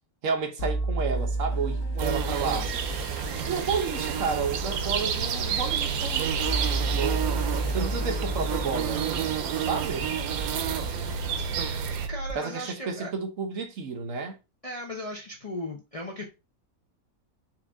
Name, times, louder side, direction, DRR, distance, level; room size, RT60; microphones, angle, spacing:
voice 1, 0.2-2.7 3.5-6.3 6.9-9.0 9.7-10.1 12.3-14.4, right 5 dB, 65° right, 1.1 m, -31 dB
sound 1, 0.6-12.3, right 2 dB, 60° left, 1.2 m, -32 dB
Toilet flush, 1.0-12.0, right 3 dB, 40° right, 0.3 m, -45 dB
sound 2, 2.0-12.1, right 8 dB, 90° right, 1.1 m, -30 dB
voice 2, 12.1-13.1 14.6-16.2, left 1 dB, 40° left, 0.5 m, -36 dB
4.6 x 2.5 x 3.4 m
omnidirectional pair, 1.5 m